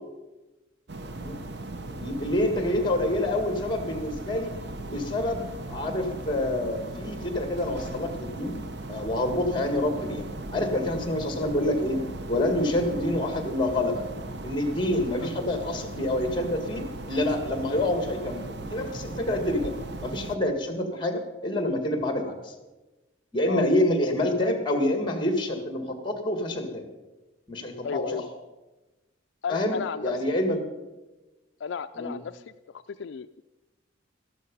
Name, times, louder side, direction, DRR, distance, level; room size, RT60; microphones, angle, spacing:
sound 1, 0.9-20.4, right 2 dB, 60° right, 0.9 m, -38 dB
voice 1, 2.0-4.5 4.8-5.4 5.7-8.5 8.9-10.3 10.5-12.0 12.3-14.0 14.4-19.7 20.0-22.5 23.3-26.8 27.5-28.2 29.5-29.8 30.0-30.6 32.0-32.1, left 1 dB, 25° left, 6 dB, 2.0 m, -27 dB
voice 2, 27.8-28.3 29.4-30.2 31.6-33.4, left 6 dB, 70° left, 10 dB, 0.4 m, -34 dB
13.5 x 12.5 x 5.4 m, 1.1 s
head